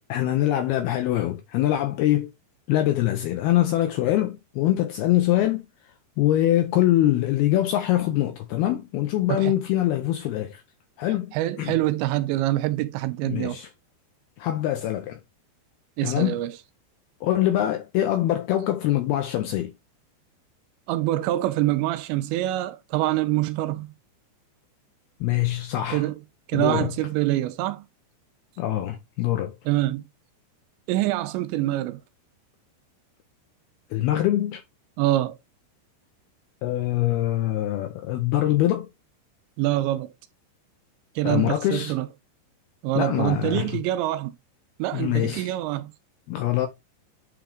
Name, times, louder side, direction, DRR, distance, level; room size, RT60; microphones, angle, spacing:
voice 1, 0.1-2.3 2.7-5.7 6.2-10.6 11.0-11.7 13.2-13.7 14.4-15.2 16.0-16.4 17.2-19.7 25.2-26.1 26.5-26.9 28.6-29.6 33.9-34.6 36.6-38.9 41.2-42.0 43.0-43.8 44.9-45.6 46.3-46.7, left 13 dB, 80° left, 2.3 m, -24 dB
voice 2, 11.3-13.6 16.0-16.5 20.9-23.9 25.9-26.2 26.5-27.8 29.7-30.0 30.9-32.0 35.0-35.4 39.6-40.1 41.2-42.1 42.8-44.3 44.8-45.9, right 16 dB, 80° right, 2.8 m, -25 dB
8.9 x 3.8 x 3.4 m
omnidirectional pair, 5.3 m